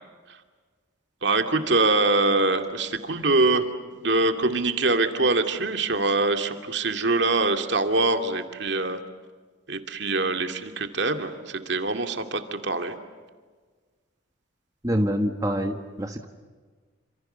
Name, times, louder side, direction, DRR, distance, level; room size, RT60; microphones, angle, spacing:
voice 1, 1.2-3.6 4.0-9.0 9.7-13.0, right 2 dB, 60° right, 6 dB, 2.5 m, -24 dB
voice 2, 14.8-16.3, equal, 15° right, 4 dB, 1.4 m, -26 dB
29.0 x 27.5 x 6.9 m, 1.5 s
head